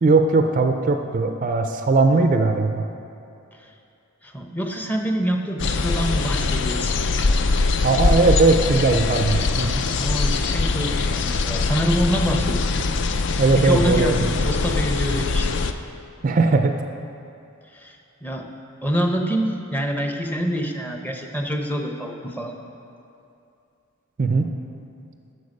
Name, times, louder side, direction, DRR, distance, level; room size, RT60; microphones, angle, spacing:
voice 1, 0.0-2.9 7.8-9.8 13.4-14.2 16.2-16.7 24.2-24.5, right 3 dB, 35° right, 6 dB, 0.4 m, -19 dB
voice 2, 4.2-7.0 10.0-12.7 13.5-15.5 17.7-18.5 18.8-22.6, equal, 10° left, 3 dB, 0.6 m, -26 dB
sound 1, 5.6-15.7, left 3 dB, 55° left, 0.4 m, -22 dB
11.5 x 6.7 x 5.3 m, 2.6 s
head